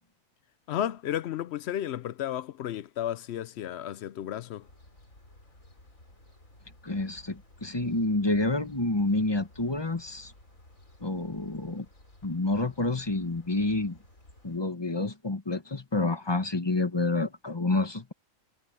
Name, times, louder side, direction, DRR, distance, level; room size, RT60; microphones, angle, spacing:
voice 1, 0.7-4.7, left 11 dB, 65° left, 0.7 m, -33 dB
sound 1, 4.6-14.6, left 1 dB, 85° left, 5.8 m, -56 dB
voice 2, 6.8-10.3 11.0-11.8 12.2-14.0 14.4-18.1, left 2 dB, 20° left, 1.1 m, -28 dB
omnidirectional pair, 1.4 m